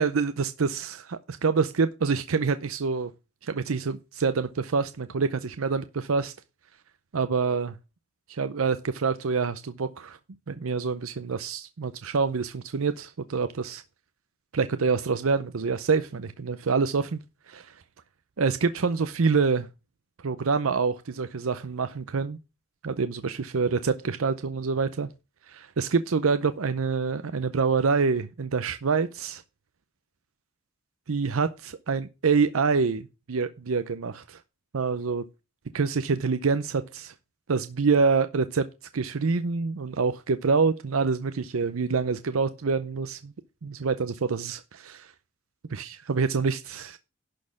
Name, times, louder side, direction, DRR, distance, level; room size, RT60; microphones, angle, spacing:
voice 1, 0.0-3.1 3.4-6.3 7.1-7.7 8.3-10.2 10.5-13.8 14.5-17.2 17.5-17.7 18.4-19.7 20.2-22.4 22.8-25.1 25.5-29.4 31.1-34.4 34.7-35.2 35.7-37.1 37.5-38.7 38.9-43.3 43.6-45.1 45.7-47.0, right 4 dB, 80° right, 0.6 m, -26 dB
11.5 x 4.3 x 7.0 m
head